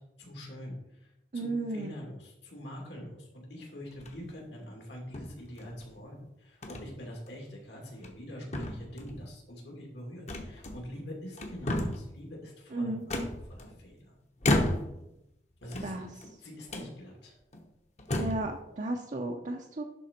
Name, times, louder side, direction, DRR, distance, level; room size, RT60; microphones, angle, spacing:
voice 1, 0.2-13.2 13.5-14.2 15.6-17.4, equal, 75° left, 0 dB, 2.4 m, -44 dB
voice 2, 1.3-1.9 12.7-13.0 15.8-16.1 18.2-19.8, right 2 dB, 45° right, 2 dB, 0.6 m, -34 dB
sound 1, 3.9-4.3 5.1-5.9 6.6-6.9 7.3-7.4 7.9-8.3 8.5-9.2 10.3-11.0 11.3-12.1 13.1-13.9 14.4-15.1 15.6-16.3 16.7-16.9 17.5-17.6 18.0-18.5, left 1 dB, 40° left, 0.9 m, -32 dB
11.0 x 3.7 x 4.3 m, 0.85 s
head